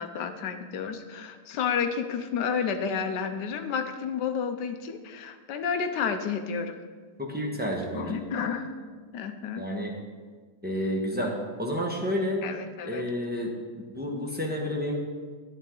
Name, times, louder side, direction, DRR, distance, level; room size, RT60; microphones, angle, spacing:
voice 1, 0.0-6.8 7.9-8.7 9.1-9.6 12.4-13.0, left 6 dB, 65° left, 7 dB, 1.1 m, -31 dB
voice 2, 7.2-8.2 9.5-9.9 10.6-12.5 12.8-15.0, equal, 10° right, -2 dB, 0.7 m, -30 dB
10.5 x 9.2 x 3.8 m, 1.5 s
omnidirectional pair, 2.3 m